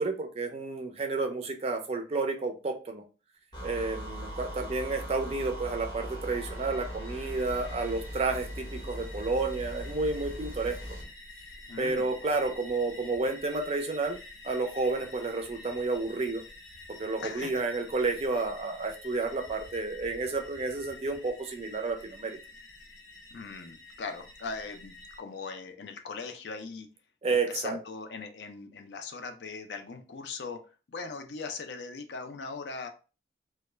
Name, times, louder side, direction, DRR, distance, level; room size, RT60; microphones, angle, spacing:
voice 1, 0.0-3.0 3.6-10.8 11.8-14.2 14.4-16.4 16.9-22.4 27.2-27.8, right 3 dB, 35° right, 5 dB, 0.4 m, -31 dB
sound 1, 3.5-11.1, equal, 25° left, 0.6 m, -40 dB
sound 2, 6.4-25.2, left 2 dB, 85° left, 0.9 m, -49 dB
voice 2, 11.7-12.1 17.2-17.6 23.3-26.9 27.3-30.6 30.9-32.9, left 4 dB, 70° left, 6 dB, 0.4 m, -40 dB
2.2 x 2.1 x 3.0 m, 0.34 s
head